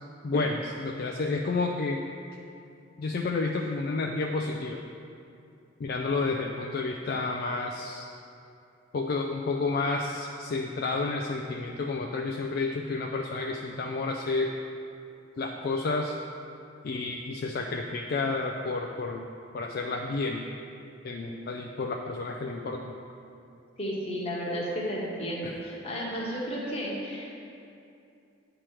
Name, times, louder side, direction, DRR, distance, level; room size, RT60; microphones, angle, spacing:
voice 1, 0.2-2.0 3.0-4.8 5.8-8.1 8.9-14.5 15.4-16.2 16.8-19.2 19.5-20.5 21.0-23.0 25.4-25.6, left 3 dB, 50° left, 0 dB, 0.3 m, -30 dB
voice 2, 23.8-27.4, equal, 30° left, -4 dB, 1.1 m, -33 dB
8.8 x 3.0 x 4.8 m, 2.6 s
head